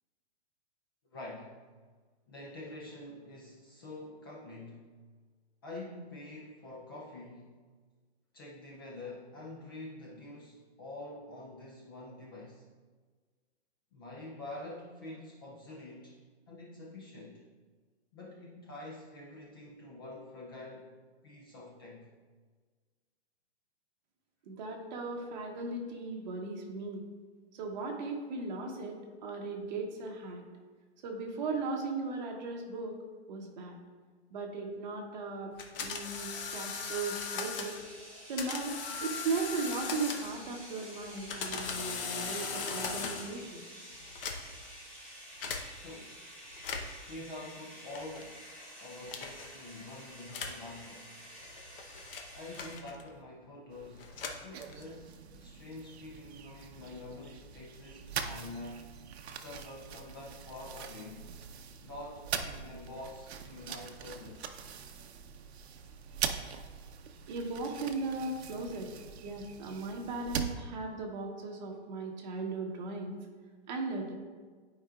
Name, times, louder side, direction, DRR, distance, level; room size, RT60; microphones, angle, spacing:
voice 1, 1.1-1.6 2.3-4.9 5.6-7.7 8.3-12.7 13.9-17.4 18.1-20.9 21.2-22.1 45.8-46.1 47.1-48.5 48.8-51.1 52.3-58.9 59.3-61.3 61.8-64.5, left 2 dB, 20° left, -3 dB, 0.4 m, -46 dB
voice 2, 24.5-27.0 27.5-30.5 31.0-33.0 33.3-33.8 34.3-35.5 35.8-37.7 38.2-43.6 67.3-68.9 69.2-73.2 73.7-74.1, right 3 dB, 40° right, 1 dB, 1.1 m, -37 dB
sound 1, 35.6-37.8 38.4-40.5 41.1-43.4 44.1-44.7 45.4-45.6 46.5-47.1 47.9-48.3 49.1-49.5 50.3-50.6 51.4-53.2 53.9-55.0, left 5 dB, 55° left, 0.9 m, -39 dB
sound 2, 37.6-52.7, equal, 5° left, 1.8 m, -50 dB
sound 3, 53.7-70.5, right 7 dB, 70° right, 0.7 m, -42 dB
11.5 x 4.9 x 2.3 m, 1.5 s
hypercardioid pair, 165°, 33 cm